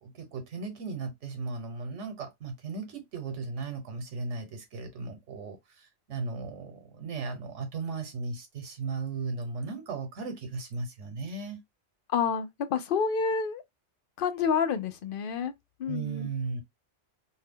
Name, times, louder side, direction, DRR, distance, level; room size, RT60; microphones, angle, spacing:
voice 1, 0.0-11.6 15.9-16.6, right 4 dB, 90° right, 1.3 m, -36 dB
voice 2, 12.1-13.6 14.2-15.5 15.8-16.3, left 6 dB, 60° left, 0.6 m, -28 dB
2.7 x 2.2 x 3.5 m
omnidirectional pair, 1.2 m